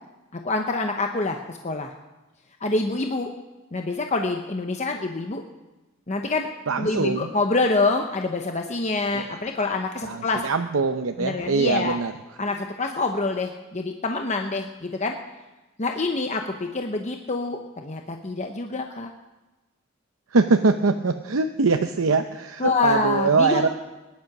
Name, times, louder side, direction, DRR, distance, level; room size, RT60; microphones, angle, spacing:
voice 1, 0.3-1.9 2.6-3.3 3.7-5.4 6.1-6.5 6.8-10.4 11.2-12.0 12.4-15.1 15.8-19.1 22.6-23.7, left 3 dB, 35° left, 4 dB, 0.9 m, -26 dB
voice 2, 6.7-7.3 9.1-9.3 10.0-12.1 20.3-23.7, right 4 dB, 85° right, 6 dB, 0.7 m, -22 dB
20.0 x 10.5 x 6.0 m, 1.1 s
head